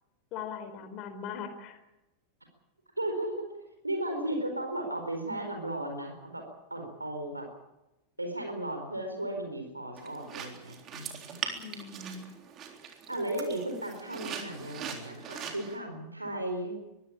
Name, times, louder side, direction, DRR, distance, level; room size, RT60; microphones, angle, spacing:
voice 1, 0.3-1.8 11.5-12.3, left 6 dB, 40° left, 9 dB, 4.4 m, -40 dB
voice 2, 3.0-3.4 3.8-7.5 8.2-11.4 13.1-16.8, right 1 dB, 85° right, 4 dB, 4.4 m, -35 dB
sound 1, 10.0-15.8, right 7 dB, 30° right, 3.7 m, -41 dB
23.0 x 16.5 x 8.6 m, 0.95 s
figure-of-eight pair, 90°, 0 cm